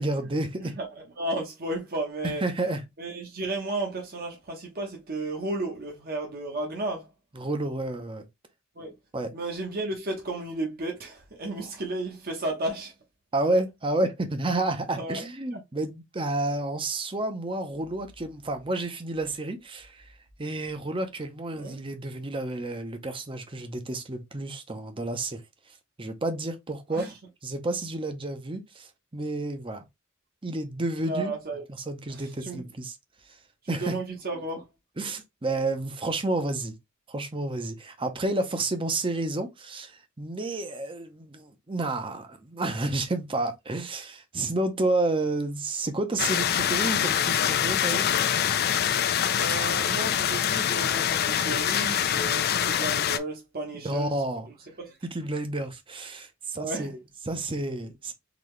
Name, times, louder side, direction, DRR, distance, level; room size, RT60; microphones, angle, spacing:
voice 1, 0.0-0.8 2.4-2.8 7.4-8.2 9.1-9.3 13.3-20.0 20.4-25.4 26.0-27.1 27.4-29.8 30.4-31.3 31.9-32.9 33.7-33.9 35.0-36.7 37.1-48.1 53.8-54.5 55.1-58.1, right 2 dB, 25° right, 0.7 m, -30 dB
voice 2, 0.6-2.4 3.0-7.1 8.8-8.9 9.3-12.9 15.0-15.3 15.5-15.6 21.5-21.8 26.9-27.1 31.0-31.6 32.1-32.6 33.6-34.7 49.3-54.1 54.8-55.0 56.6-56.9, right 2 dB, 45° right, 1.0 m, -33 dB
sound 1, 46.2-53.2, left 9 dB, 45° left, 0.4 m, -25 dB
4.0 x 2.8 x 3.1 m
head